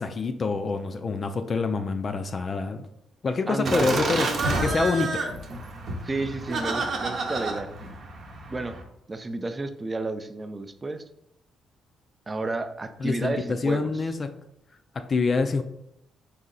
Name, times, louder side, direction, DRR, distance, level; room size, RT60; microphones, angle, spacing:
voice 1, 0.0-2.9 3.2-4.3 4.6-5.2 13.0-14.4 14.9-15.6, left 4 dB, 40° left, 7 dB, 0.4 m, -26 dB
voice 2, 3.5-4.0 6.0-7.7 8.5-8.7 9.1-11.0 12.3-13.9, right 2 dB, 25° right, 9 dB, 0.4 m, -31 dB
Laughter, 3.6-8.8, right 3 dB, 55° right, 0.8 m, -29 dB
4.2 x 2.8 x 3.9 m, 0.81 s
cardioid pair, 90°, 0 cm